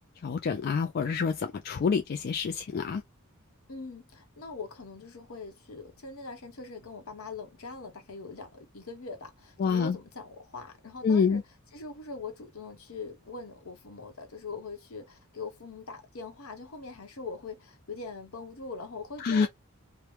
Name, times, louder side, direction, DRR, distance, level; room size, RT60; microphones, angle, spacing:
voice 1, 0.2-3.0 9.6-10.0 11.0-11.4 19.2-19.5, left 5 dB, 45° left, 0.3 m, -27 dB
voice 2, 3.7-19.5, left 4 dB, 70° left, 1.0 m, -42 dB
2.9 x 2.2 x 3.2 m
head